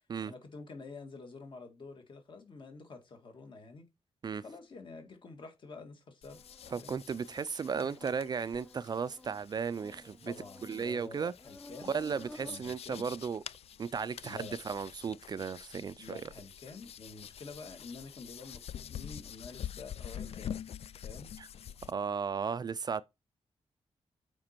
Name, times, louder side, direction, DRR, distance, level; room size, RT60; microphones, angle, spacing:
voice 1, 0.3-3.9 4.4-6.4 6.7-6.9 7.8-8.1 10.3-13.1 14.2-14.6 16.0-20.6 21.0-21.3, left 4 dB, 45° left, 1.9 m, -48 dB
sound 1, 6.2-21.9, left 9 dB, 65° left, 0.4 m, -47 dB
Insect, 6.3-12.6, left 1 dB, 10° left, 0.7 m, -54 dB
voice 2, 6.7-10.3 10.6-11.3 11.9-13.4 13.8-16.2 21.4-21.5 21.9-23.0, right 6 dB, 40° right, 0.3 m, -35 dB
7.4 x 5.2 x 4.4 m
wide cardioid pair, 170°, 11 cm